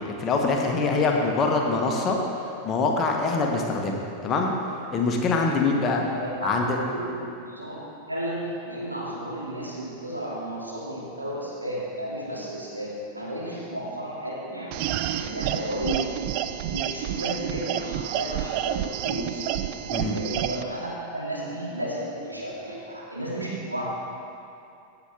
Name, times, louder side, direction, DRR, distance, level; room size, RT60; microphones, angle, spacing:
voice 1, 0.0-2.2 2.6-4.5 4.9-6.0 6.4-6.8 19.9-20.2, left 3 dB, 30° left, 1 dB, 1.3 m, -24 dB
voice 2, 6.1-6.5 6.8-7.7 8.1-14.7 15.1-16.1 16.5-19.4 19.8-20.9 21.1-23.9, right 1 dB, 85° right, -6 dB, 2.4 m, -33 dB
sound 1, 14.7-20.6, right 12 dB, 45° right, 0.4 m, -29 dB
15.5 x 7.1 x 3.5 m, 2.7 s
figure-of-eight pair, 90°, 0 cm